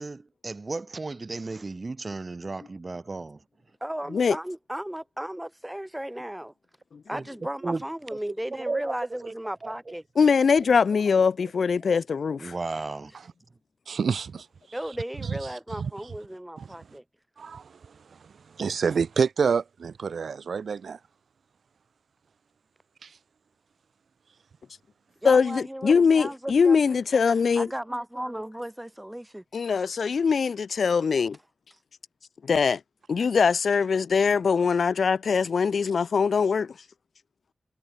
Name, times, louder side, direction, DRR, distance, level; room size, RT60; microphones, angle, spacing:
voice 1, 0.0-3.4 7.1-7.2 7.6-7.8 8.5-8.9 9.2-9.3 9.6-9.7 12.4-13.1, right 3 dB, 40° right, 1.2 m, -34 dB
voice 2, 3.8-6.5 7.1-10.0 14.7-17.0 25.2-27.0 27.6-29.4, right 1 dB, 10° right, 2.6 m, -35 dB
voice 3, 10.2-12.5 25.2-27.7 29.5-31.4 32.4-32.8 33.1-36.7, left 5 dB, 80° left, 0.4 m, -22 dB
voice 4, 13.9-14.5 15.8-15.9 17.4-17.9 18.2-21.0 23.0-23.1, right 6 dB, 90° right, 0.6 m, -28 dB
wide cardioid pair, 90°, 0 cm